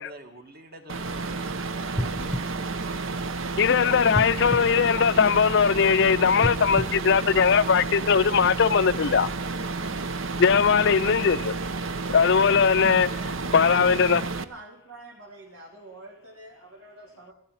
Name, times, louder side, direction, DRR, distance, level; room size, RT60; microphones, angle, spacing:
voice 1, 0.0-4.2, right 1 dB, 45° right, 2.0 m, -49 dB
sound 1, 0.9-14.4, right 3 dB, 65° right, 0.9 m, -31 dB
sound 2, 1.9-3.6 4.1-5.7 6.3-8.0 8.6-8.7, equal, 5° right, 0.9 m, -34 dB
voice 2, 3.6-9.3 10.4-11.6 12.1-13.1 13.5-14.2, left 6 dB, 55° left, 0.5 m, -20 dB
voice 3, 13.1-17.3, right 2 dB, 85° right, 2.9 m, -44 dB
14.5 x 11.5 x 7.5 m
head